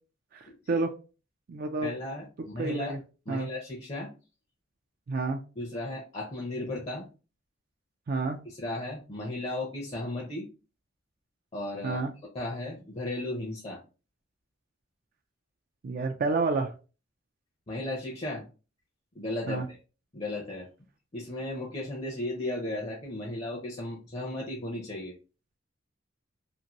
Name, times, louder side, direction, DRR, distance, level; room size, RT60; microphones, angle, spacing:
voice 1, 0.3-0.9 1.5-1.9 2.6-3.0 3.3-3.5 5.1-5.4 8.1-8.4 11.8-12.1 15.8-16.7 19.5-19.7, right 3 dB, 50° right, 5 dB, 0.3 m, -29 dB
voice 2, 1.8-3.0 3.3-4.1 5.6-7.1 8.6-10.5 11.5-12.0 12.3-13.8 17.7-18.4 19.2-19.8 20.1-20.7 21.1-25.1, left 1 dB, 30° left, -2 dB, 0.6 m, -35 dB
2.6 x 2.5 x 2.9 m, 0.33 s
head